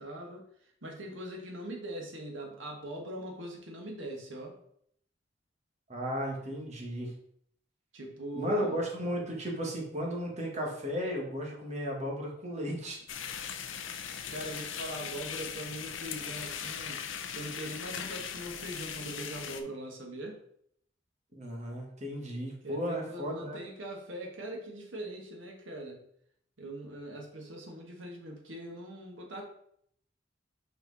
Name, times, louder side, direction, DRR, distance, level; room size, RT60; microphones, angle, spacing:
voice 1, 0.0-4.5 7.9-8.8 14.3-20.4 22.6-26.0 26.6-29.4, right 1 dB, 80° right, 1 dB, 1.5 m, -41 dB
voice 2, 5.9-7.1 8.3-13.0 21.3-23.6, equal, 35° right, -1 dB, 1.5 m, -35 dB
sound 1, 13.1-19.6, left 7 dB, 80° left, 0.6 m, -39 dB
5.4 x 4.4 x 4.0 m, 0.68 s
head